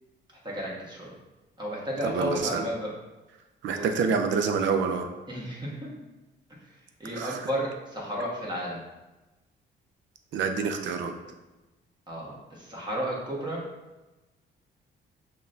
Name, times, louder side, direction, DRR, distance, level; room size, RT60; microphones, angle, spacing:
voice 1, 0.4-1.1 1.6-2.9 3.6-4.1 5.3-5.9 6.6-8.8 12.1-13.6, right 1 dB, 20° right, -5 dB, 1.2 m, -33 dB
voice 2, 2.0-2.6 3.6-5.1 7.2-7.4 10.3-11.1, right 5 dB, 70° right, 6 dB, 0.5 m, -27 dB
5.8 x 2.2 x 2.6 m, 1.1 s
cardioid pair, 90°, 20 cm